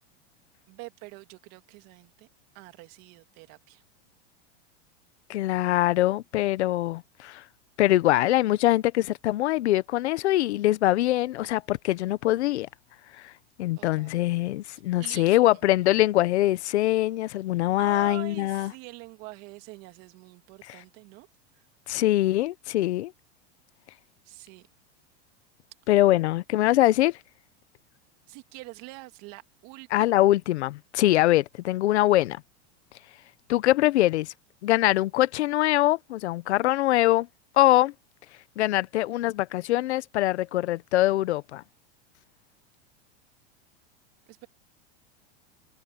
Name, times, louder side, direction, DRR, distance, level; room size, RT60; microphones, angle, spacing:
voice 1, 0.7-2.3 2.5-3.8 13.8-14.2 15.0-15.6 17.8-21.3 21.5-21.7 24.2-24.7 28.3-30.2 44.3-44.5, right 23 dB, 50° right, 2.5 m, -45 dB
voice 2, 5.3-7.4 7.8-12.7 13.2-13.3 13.6-18.7 21.9-23.1 25.9-27.2 29.9-32.4 33.5-34.3 34.6-37.3 37.6-37.9 38.6-41.6, left 15 dB, 80° left, 1.1 m, -23 dB
supercardioid pair, 135°, 33 cm